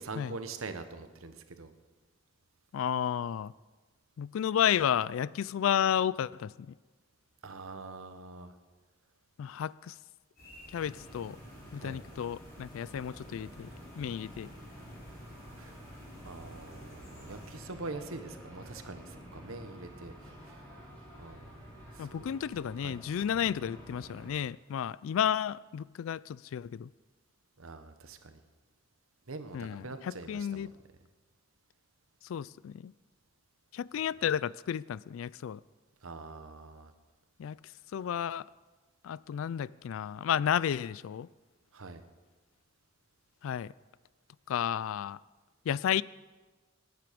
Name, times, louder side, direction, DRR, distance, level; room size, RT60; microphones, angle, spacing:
voice 1, 0.0-1.7 7.4-8.5 11.8-12.0 15.6-15.8 16.2-20.6 21.2-22.3 22.8-23.0 27.6-28.4 29.3-30.7 36.0-36.9 41.7-42.0, right 3 dB, 90° right, 1.1 m, -44 dB
voice 2, 2.7-3.5 4.2-6.7 9.4-10.0 10.7-11.4 11.7-13.7 14.0-14.5 22.0-26.9 29.5-30.7 32.2-32.9 33.7-35.6 37.4-37.6 37.9-38.5 39.0-41.3 43.4-43.7 44.5-45.2 45.7-46.0, left 9 dB, 80° left, 0.3 m, -32 dB
sound 1, 10.4-17.6, left 1 dB, 50° left, 3.8 m, -54 dB
sound 2, 10.7-24.3, equal, 10° left, 5.7 m, -50 dB
18.5 x 9.3 x 5.1 m
head